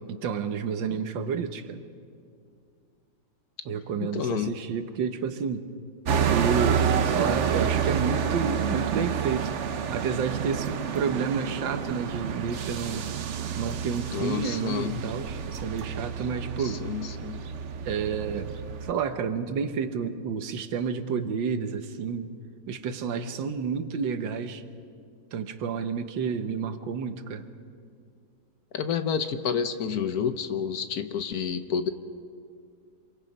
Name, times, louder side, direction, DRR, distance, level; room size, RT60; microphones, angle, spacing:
voice 1, 0.1-1.8 3.7-5.6 6.3-9.5 9.9-13.1 13.6-16.8 17.9-18.6 18.8-22.3 22.7-24.6 25.3-27.5, right 6 dB, 85° right, 9 dB, 1.8 m, -30 dB
voice 2, 4.0-4.6 14.1-15.1 16.6-17.4 28.7-31.9, left 7 dB, 60° left, 9 dB, 1.2 m, -29 dB
sound 1, 6.0-18.9, right 7 dB, 55° right, 0.9 m, -29 dB
27.0 x 22.5 x 5.4 m, 2.3 s
omnidirectional pair, 2.0 m